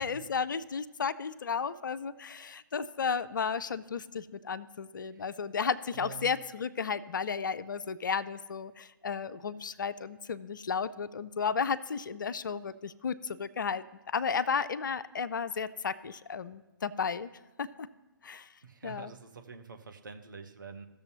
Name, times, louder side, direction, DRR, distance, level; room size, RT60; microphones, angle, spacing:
voice 1, 0.0-17.3 17.6-17.9 18.2-18.5 18.8-19.1, left 6 dB, 60° left, 15 dB, 0.4 m, -33 dB
voice 2, 5.9-6.3 18.6-20.9, right 4 dB, 60° right, 5 dB, 0.9 m, -46 dB
16.5 x 6.7 x 2.8 m, 1.1 s
figure-of-eight pair, 130°, 12 cm